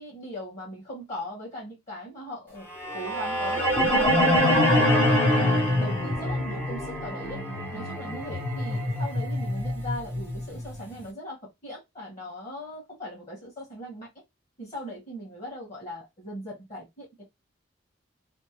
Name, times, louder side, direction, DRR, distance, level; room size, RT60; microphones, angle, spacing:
voice 1, 0.0-2.7 2.9-4.9 5.3-7.4 7.7-14.1 14.6-17.1, left 1 dB, 35° left, 1.6 m, -39 dB
sound 1, 2.7-10.8, left 1 dB, 10° left, 0.8 m, -25 dB
3.3 x 2.0 x 2.9 m
head